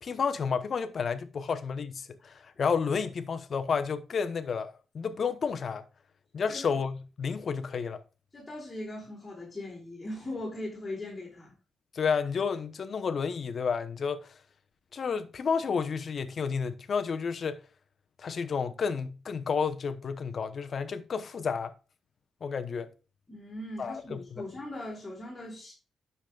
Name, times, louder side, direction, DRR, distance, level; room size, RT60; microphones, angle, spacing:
voice 1, 0.0-5.8 6.3-8.0 11.9-14.3 14.9-17.6 18.2-21.7 22.4-22.9 23.8-24.4, left 6 dB, 50° left, 0.9 m, -31 dB
voice 2, 8.3-11.5 23.3-25.7, left 1 dB, 15° left, 4.9 m, -39 dB
10.0 x 6.7 x 2.3 m
cardioid pair, 105°, 0 cm